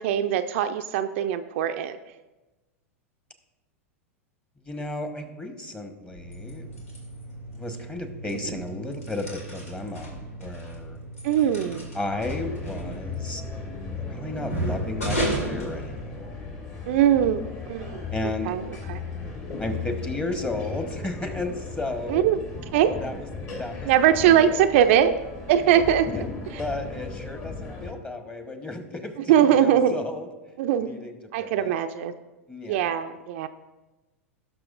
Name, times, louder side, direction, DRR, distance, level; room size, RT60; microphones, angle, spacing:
voice 1, 0.0-2.0 8.5-8.6 11.2-11.9 16.9-18.0 18.5-18.6 18.9-19.0 22.1-22.4 22.7-23.0 23.9-25.2 25.5-26.1 26.5-26.6 29.3-30.0 30.6-30.9 31.3-32.1 32.7-33.5, right 10 dB, 60° right, 8 dB, 0.4 m, -21 dB
voice 2, 4.6-6.7 7.5-11.0 11.9-13.4 14.0-16.3 18.1-18.6 19.6-22.3 23.0-23.2 23.6-24.4 25.6-26.2 26.6-30.3 30.8-31.7 32.5-32.8, left 2 dB, 15° left, 6 dB, 1.2 m, -34 dB
sound 1, 6.1-16.6, right 1 dB, 80° left, 2.2 m, -35 dB
sound 2, 12.1-27.9, left 4 dB, 40° left, 2.2 m, -36 dB
17.5 x 6.2 x 2.5 m, 1.1 s
hypercardioid pair, 95°, 8 cm